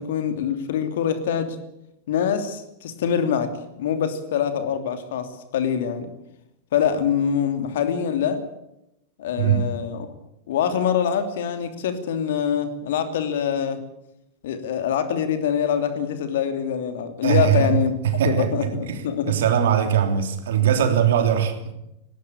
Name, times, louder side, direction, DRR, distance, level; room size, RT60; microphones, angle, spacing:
voice 1, 0.0-1.6 2.1-6.1 6.7-8.4 9.2-10.1 10.5-13.8 14.4-17.9 18.2-19.3 20.7-20.8, left 8 dB, 55° left, 9 dB, 2.9 m, -24 dB
voice 2, 9.4-9.7 17.2-17.7 18.0-21.7, right 9 dB, 60° right, 7 dB, 3.2 m, -21 dB
19.0 x 18.5 x 8.7 m, 0.84 s
figure-of-eight pair, 90°, 0 cm